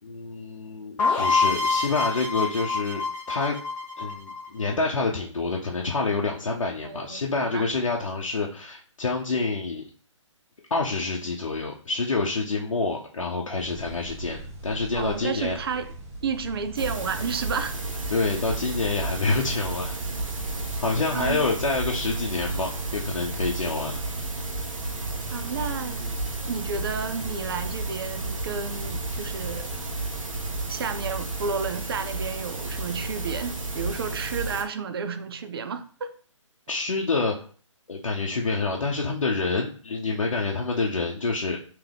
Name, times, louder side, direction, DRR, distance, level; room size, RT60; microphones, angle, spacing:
voice 1, 0.0-3.6 4.0-9.8 10.7-15.6 18.1-19.9 20.8-23.9 36.7-37.4 37.9-41.6, left 3 dB, 85° left, -2 dB, 0.7 m, -27 dB
sound 1, 1.0-4.7, left 4 dB, 10° left, 0.9 m, -26 dB
voice 2, 6.8-7.7 14.9-15.9 16.2-17.8 21.1-21.4 25.3-26.2 26.4-29.7 30.7-36.2, right 5 dB, 50° right, 11 dB, 0.5 m, -31 dB
sound 2, 13.6-30.6, right 1 dB, 25° right, 1.0 m, -40 dB
sound 3, 16.8-34.6, right 3 dB, 90° right, 1.1 m, -32 dB
3.5 x 3.0 x 3.4 m, 0.42 s
hypercardioid pair, 150°, 16 cm